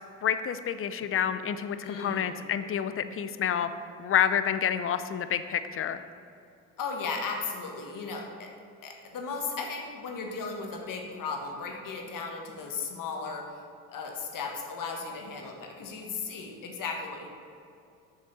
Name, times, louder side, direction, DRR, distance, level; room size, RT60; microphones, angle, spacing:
voice 1, 0.2-3.7 4.0-6.0, left 9 dB, 35° left, 11 dB, 0.5 m, -28 dB
voice 2, 1.8-2.4 6.8-8.5 8.8-13.6 13.9-17.3, left 4 dB, 50° left, 1 dB, 1.4 m, -36 dB
6.7 x 6.2 x 4.1 m, 2.6 s
hypercardioid pair, 60°, 41 cm